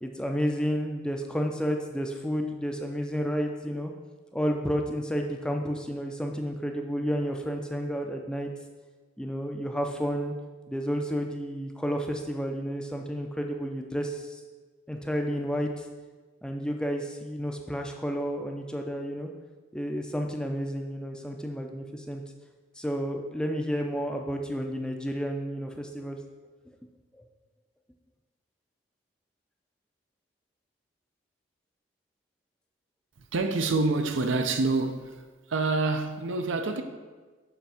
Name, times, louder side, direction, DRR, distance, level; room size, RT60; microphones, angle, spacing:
voice 1, 0.0-3.9 4.3-8.5 9.2-10.3 10.7-14.4 14.9-15.9 16.4-19.3 19.7-22.2 22.8-26.2, equal, 5° left, 0.4 m, -31 dB
voice 2, 33.3-35.2 35.5-36.8, right 3 dB, 80° right, 0.6 m, -27 dB
7.0 x 3.4 x 5.6 m
head